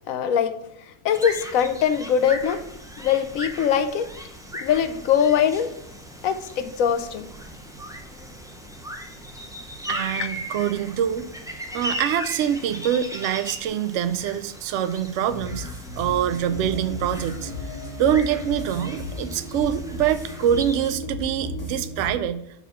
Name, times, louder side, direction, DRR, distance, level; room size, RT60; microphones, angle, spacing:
voice 1, 0.1-0.5 1.0-2.6 3.0-4.1 4.6-5.7 6.2-7.3 12.2-12.3, left 8 dB, 70° left, 11 dB, 1.0 m, -22 dB
sound 1, 1.1-20.9, equal, 5° right, 0.5 m, -38 dB
voice 2, 9.9-11.3 11.7-15.7 16.0-17.5 18.0-22.4, right 9 dB, 65° right, 10 dB, 0.8 m, -25 dB
sound 2, 15.3-22.1, left 1 dB, 10° left, 2.0 m, -34 dB
5.6 x 4.8 x 5.6 m, 0.77 s
omnidirectional pair, 1.6 m